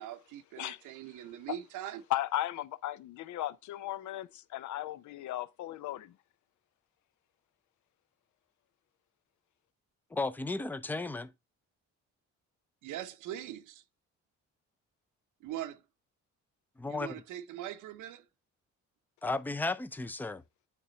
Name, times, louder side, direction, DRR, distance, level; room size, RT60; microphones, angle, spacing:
voice 1, 0.0-2.0 12.8-13.8 15.4-15.8 16.9-18.3, right 12 dB, 85° right, 0.7 m, -41 dB
voice 2, 2.1-6.2, left 13 dB, 75° left, 0.5 m, -36 dB
voice 3, 10.1-11.3 16.8-17.2 19.2-20.4, left 3 dB, 5° left, 0.4 m, -34 dB
8.4 x 3.7 x 4.0 m
cardioid pair, 90°, 30 cm